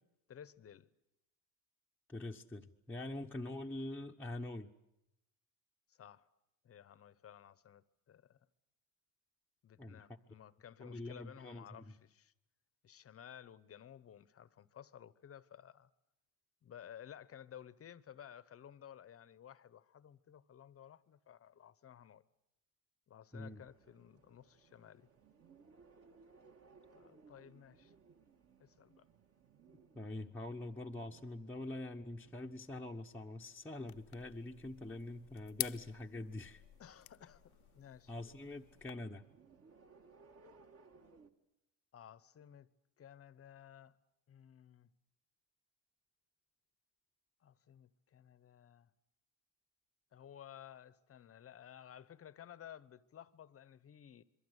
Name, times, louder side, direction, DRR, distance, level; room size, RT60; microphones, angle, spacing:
voice 1, 0.3-0.9 5.9-6.3 6.6-8.4 9.6-12.3 12.8-15.9 16.6-22.2 23.1-25.1 26.9-27.9 28.6-29.1 36.8-38.1 41.9-42.7 43.0-43.9 44.3-44.9 47.4-48.9 50.1-54.2, left 9 dB, 30° left, 1.0 m, -55 dB
voice 2, 2.1-4.7 9.8-10.0 10.8-11.8 23.3-23.6 29.9-36.6 38.1-39.3, left 2 dB, 5° left, 1.0 m, -44 dB
sound 1, 23.3-41.3, right 4 dB, 30° right, 1.9 m, -66 dB
sound 2, 33.9-38.9, left 18 dB, 60° left, 0.9 m, -48 dB
27.5 x 22.5 x 8.1 m
cardioid pair, 115°, 44 cm